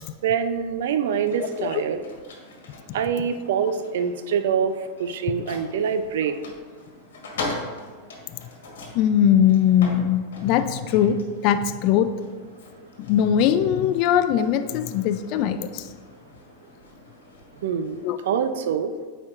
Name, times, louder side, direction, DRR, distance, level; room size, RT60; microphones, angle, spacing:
voice 1, 0.2-2.0 2.9-4.7 5.0-6.3 17.6-18.9, right 7 dB, 75° right, 9 dB, 0.4 m, -25 dB
sound 1, 1.0-18.1, left 2 dB, 85° left, 1.3 m, -41 dB
voice 2, 8.9-12.1 13.0-15.9 18.0-18.2, left 9 dB, 50° left, 10 dB, 0.3 m, -21 dB
8.8 x 4.4 x 2.5 m, 1.5 s
hypercardioid pair, 120°, 0 cm